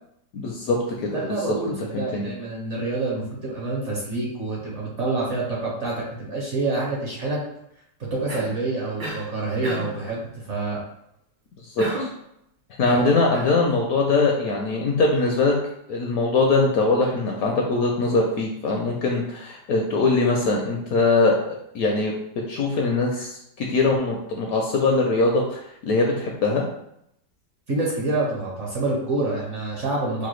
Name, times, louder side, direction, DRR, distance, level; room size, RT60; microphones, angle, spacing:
voice 1, 0.3-2.3 11.6-12.1 12.8-15.5 15.9-22.1 22.5-26.6, left 3 dB, 70° left, 0 dB, 0.9 m, -22 dB
voice 2, 1.1-7.4 8.0-10.8 12.9-13.0 27.7-30.3, right 2 dB, 55° right, -3 dB, 0.9 m, -27 dB
Cough, 8.3-8.6 9.0-9.3 9.6-10.0 11.8-12.2 12.8-13.6, right 1 dB, 75° right, 1.5 m, -32 dB
4.8 x 2.1 x 3.1 m, 0.77 s
omnidirectional pair, 1.9 m